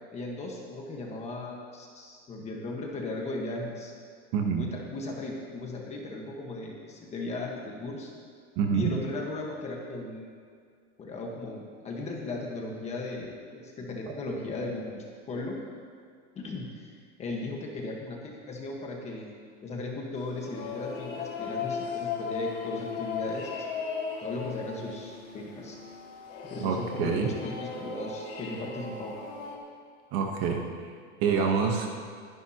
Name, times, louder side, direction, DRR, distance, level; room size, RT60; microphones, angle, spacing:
voice 1, 0.1-3.9 4.5-8.1 8.7-10.3 11.0-15.6 16.3-16.9 17.2-19.4 19.6-23.7 24.2-25.8 26.4-29.2, left 2 dB, 20° left, 0 dB, 1.4 m, -37 dB
voice 2, 4.3-4.6 8.6-8.9 26.6-27.3 30.1-30.6 31.2-31.9, right 6 dB, 35° right, 2 dB, 1.2 m, -26 dB
sound 1, 20.2-29.6, left 5 dB, 40° left, 2.0 m, -37 dB
21.5 x 10.5 x 2.9 m, 2.1 s
supercardioid pair, 165°, 37 cm